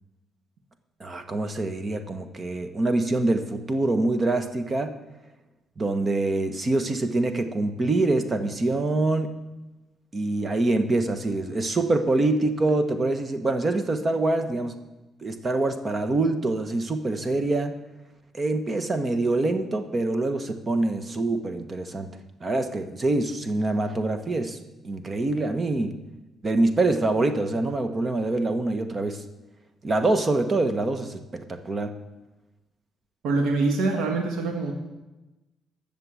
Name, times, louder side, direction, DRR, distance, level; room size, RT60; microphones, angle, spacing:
voice 1, 1.0-4.9 5.8-9.3 10.1-14.7 15.2-17.8 18.3-22.1 22.4-24.6 24.8-25.9 26.4-29.2 29.8-31.9, right 2 dB, 30° right, 8 dB, 1.0 m, -25 dB
voice 2, 33.2-34.7, right 3 dB, 85° right, 2 dB, 1.6 m, -24 dB
11.5 x 6.8 x 7.5 m, 1.1 s
cardioid pair, 90°, 0 cm